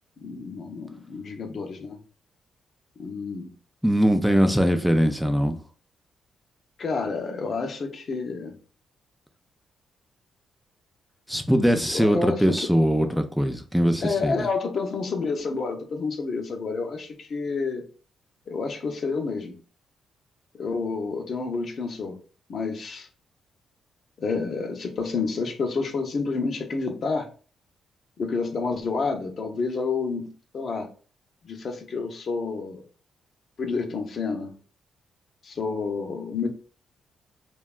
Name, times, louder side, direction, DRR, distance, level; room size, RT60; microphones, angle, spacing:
voice 1, 0.2-2.0 3.0-3.5 6.8-8.5 11.9-12.7 14.0-17.8 18.5-19.5 20.5-22.2 22.5-23.1 24.2-27.3 28.2-30.9 31.4-32.8 33.6-34.6 35.4-36.5, left 4 dB, 55° left, 0.5 m, -29 dB
voice 2, 3.8-5.6 11.3-14.3, equal, ahead, 0.3 m, -21 dB
2.7 x 2.2 x 2.3 m
cardioid pair, 80°, 0 cm